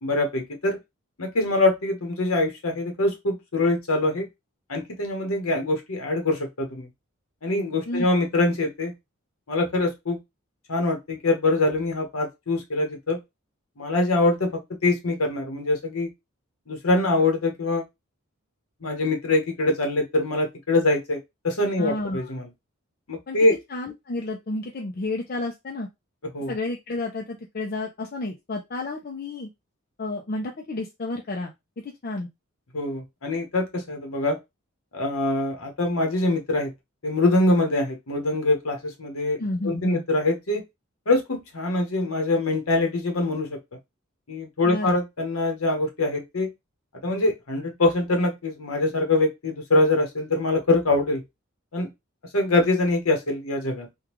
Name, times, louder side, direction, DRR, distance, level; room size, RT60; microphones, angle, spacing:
voice 1, 0.0-0.8 1.2-4.3 4.7-6.9 7.4-8.9 9.5-10.2 10.7-13.2 13.8-16.1 16.7-17.8 18.8-22.5 23.1-23.5 26.3-26.5 32.7-34.4 34.9-36.7 37.0-39.4 39.6-40.6 41.1-43.6 44.3-46.5 47.0-51.2 51.7-51.9 52.3-53.9, left 2 dB, 90° left, 3 dB, 1.1 m, -24 dB
voice 2, 21.8-22.3 23.3-23.4 23.7-25.9 26.5-29.5 30.0-31.5 31.8-32.3 39.4-40.0 44.7-45.0, left 2 dB, 45° left, 1 dB, 0.5 m, -31 dB
3.6 x 2.3 x 3.0 m, 0.20 s
head